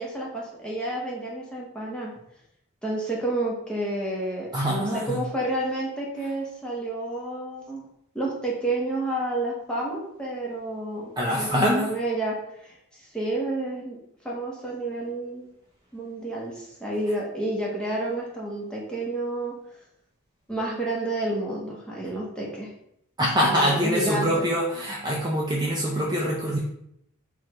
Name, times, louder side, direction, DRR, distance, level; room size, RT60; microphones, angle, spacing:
voice 1, 0.0-2.1 2.8-7.8 8.1-14.0 14.2-15.5 15.9-19.5 20.5-22.7 23.5-24.5, right 1 dB, 5° left, -4 dB, 1.0 m, -30 dB
voice 2, 4.5-5.2 11.2-11.9 23.2-26.6, equal, 20° right, -3 dB, 0.5 m, -24 dB
4.7 x 2.5 x 4.3 m, 0.76 s
head